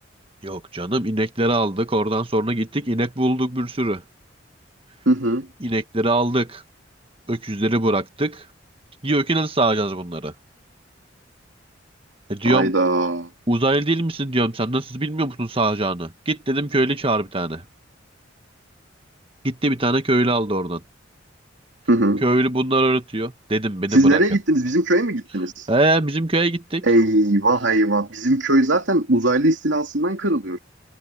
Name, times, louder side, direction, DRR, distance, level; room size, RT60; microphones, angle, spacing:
voice 1, 0.4-4.0 5.6-6.6 7.3-8.4 9.0-10.3 12.3-12.7 13.5-17.6 19.4-20.8 22.2-24.2 25.7-26.9, right 1 dB, 30° right, 1.6 m, -22 dB
voice 2, 5.1-5.5 12.4-13.3 21.9-22.2 23.9-25.7 26.8-30.6, right 1 dB, 65° right, 2.9 m, -19 dB
head